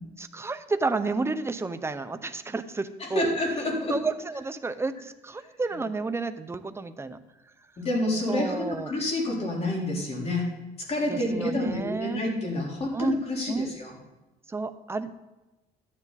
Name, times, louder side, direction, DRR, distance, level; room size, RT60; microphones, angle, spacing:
voice 1, 0.2-3.2 3.9-7.2 8.3-8.9 11.1-12.2 12.9-13.2 13.5-13.7 14.5-15.1, right 3 dB, 15° right, 9 dB, 0.8 m, -31 dB
voice 2, 3.0-3.9 7.8-10.5 10.9-13.9, left 1 dB, 35° left, -2 dB, 4.0 m, -28 dB
13.5 x 9.8 x 4.1 m, 1.0 s
cardioid pair, 110°, 17 cm